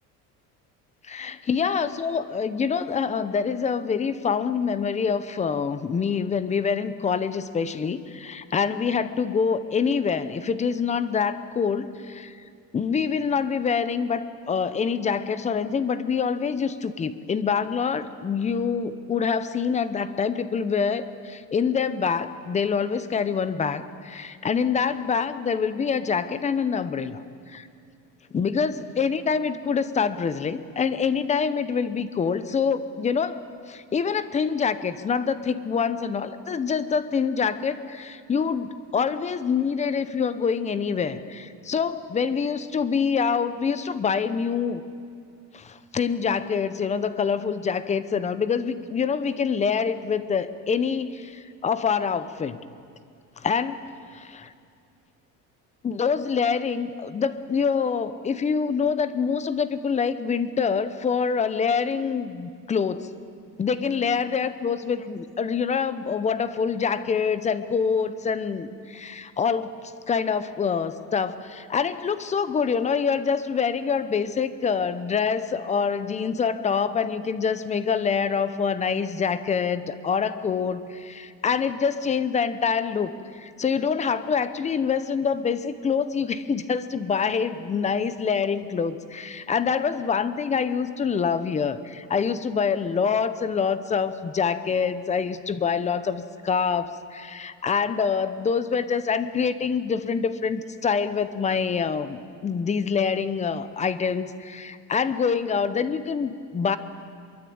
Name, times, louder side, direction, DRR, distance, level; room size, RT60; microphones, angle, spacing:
voice 1, 1.0-12.4 12.7-27.7 28.3-33.4 33.7-44.8 45.5-52.6 53.4-54.5 55.8-63.1 63.6-69.7 70.1-106.8, left 6 dB, 20° left, 13 dB, 0.8 m, -26 dB
23.5 x 23.0 x 8.7 m, 2.3 s
cardioid pair, 165°, 35 cm